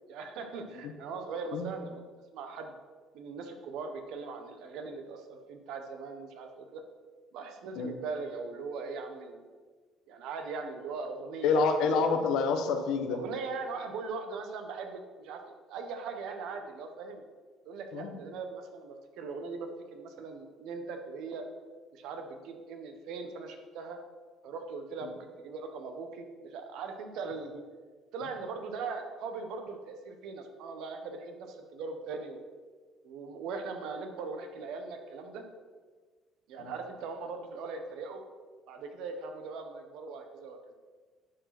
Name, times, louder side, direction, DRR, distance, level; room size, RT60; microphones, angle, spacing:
voice 1, 0.1-2.0 2.3-2.7 3.1-6.8 7.3-9.4 10.1-11.7 12.0-12.2 13.1-15.4 15.7-17.2 17.6-21.4 21.9-24.0 24.4-27.6 28.1-32.4 33.0-35.4 36.5-38.2 38.7-40.6, right 4 dB, 75° right, 5 dB, 1.3 m, -40 dB
voice 2, 11.4-13.2 17.9-18.2 25.0-25.1 36.6-36.7, left 4 dB, 75° left, 6 dB, 1.3 m, -28 dB
11.0 x 4.9 x 6.1 m, 1.5 s
supercardioid pair, 75°, 0 cm